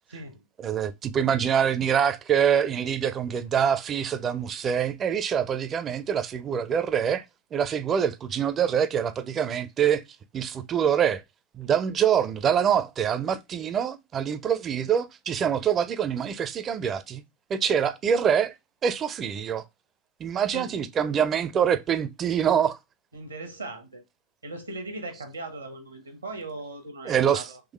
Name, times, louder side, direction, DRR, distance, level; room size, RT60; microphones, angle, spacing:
voice 1, 0.1-0.4 20.5-20.7 23.1-24.0 24.4-27.6, right 2 dB, 80° right, 1.0 m, -38 dB
voice 2, 0.6-7.2 7.5-10.0 10.3-11.2 11.5-17.2 17.5-18.5 18.8-19.6 20.2-22.8 27.1-27.5, right 8 dB, 25° right, 0.4 m, -25 dB
3.7 x 3.1 x 3.0 m
figure-of-eight pair, 90°, 0 cm